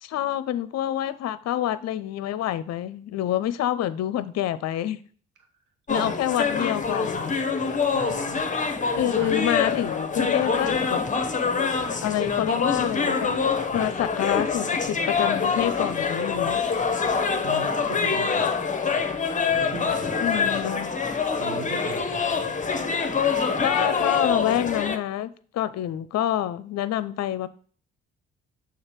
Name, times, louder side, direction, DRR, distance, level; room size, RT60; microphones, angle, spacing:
voice 1, 0.0-5.0 5.9-7.4 8.9-11.0 12.0-13.3 13.7-16.6 20.2-20.9 23.6-27.5, left 12 dB, 55° left, 0.6 m, -27 dB
sound 1, 5.9-25.0, left 5 dB, 25° left, 0.9 m, -25 dB
voice 2, 7.9-8.5 8.9-9.4 17.4-18.5 19.5-20.4 21.4-22.5, right 6 dB, 70° right, 1.4 m, -38 dB
6.5 x 3.5 x 4.5 m
hypercardioid pair, 55°, 31 cm